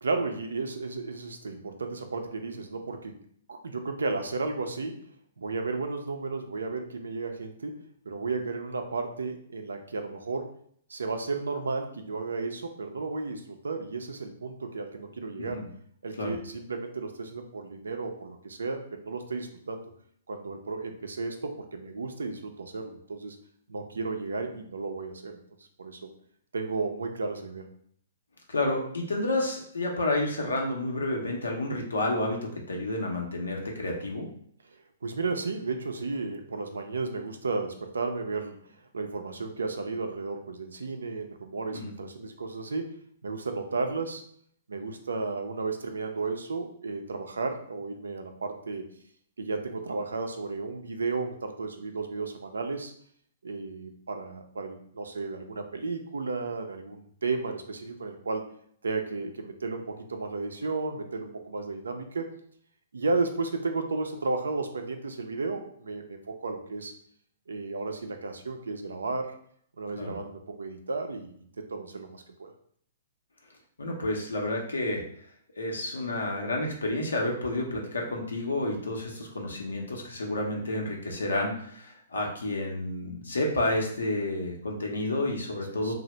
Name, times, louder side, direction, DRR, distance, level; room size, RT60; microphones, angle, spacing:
voice 1, 0.0-3.2 3.5-5.0 5.4-7.8 8.1-10.5 10.9-15.6 16.0-19.8 20.3-23.4 23.7-25.4 25.8-26.1 26.5-27.7 34.7-42.9 43.2-44.2 44.7-48.9 49.4-52.9 53.4-58.4 58.8-62.3 62.9-66.9 67.5-69.3 69.8-72.5 85.6-85.9, right 3 dB, 85° right, 5 dB, 0.4 m, -33 dB
voice 2, 28.5-34.3 41.7-41.8 70.0-70.2 73.8-75.0 75.6-85.9, left 2 dB, 90° left, 1 dB, 0.7 m, -30 dB
2.7 x 2.0 x 3.1 m, 0.63 s
hypercardioid pair, 130°, 0 cm